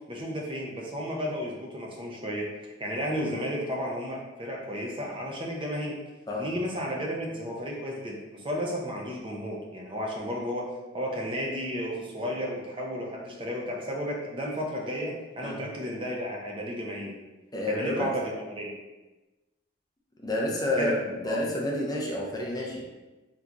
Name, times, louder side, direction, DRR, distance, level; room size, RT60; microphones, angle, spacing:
voice 1, 0.1-6.0 6.4-10.7 10.9-17.2 17.7-18.7 20.7-20.9 21.3-21.4, equal, 25° right, -1 dB, 0.5 m, -33 dB
voice 2, 17.5-18.1 20.2-21.0 21.2-22.8, left 1 dB, 20° left, -2 dB, 0.5 m, -29 dB
3.7 x 2.8 x 2.4 m, 1.1 s
head